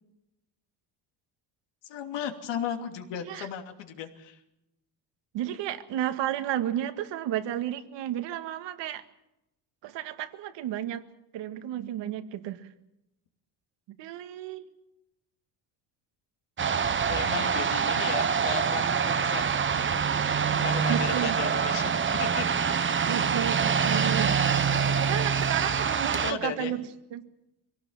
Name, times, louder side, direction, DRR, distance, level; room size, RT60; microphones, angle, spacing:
voice 1, 1.8-4.4 17.1-20.0 20.6-22.7 24.7-24.9 26.2-26.7, left 8 dB, 75° left, 5 dB, 2.9 m, -36 dB
voice 2, 5.3-9.0 9.8-11.0 11.3-12.7 14.0-14.7 20.9-21.3 23.1-24.4 25.0-26.8 27.1-27.2, right 11 dB, 75° right, 9 dB, 2.0 m, -32 dB
sound 1, 16.6-26.3, right 6 dB, 25° right, 1.0 m, -25 dB
23.5 x 17.5 x 7.3 m, 0.88 s
cardioid pair, 115°, 43 cm